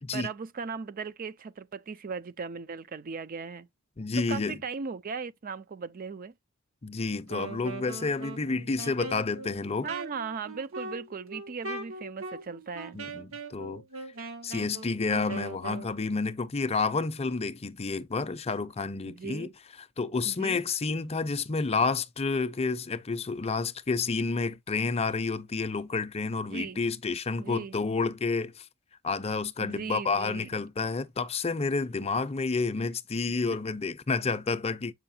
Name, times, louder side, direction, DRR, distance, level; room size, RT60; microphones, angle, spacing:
voice 1, 0.1-3.7 4.2-6.3 9.8-13.0 19.0-19.5 20.3-20.6 26.5-26.8 27.4-27.7 29.6-30.5, right 5 dB, 40° right, 0.4 m, -37 dB
voice 2, 4.0-4.5 6.8-9.9 12.9-13.8 14.4-19.5 20.0-28.7 29.0-34.9, left 4 dB, 30° left, 0.6 m, -30 dB
Wind instrument woodwind instrument, 7.2-15.9, right 3 dB, 75° right, 1.6 m, -40 dB
7.8 x 5.6 x 2.6 m
head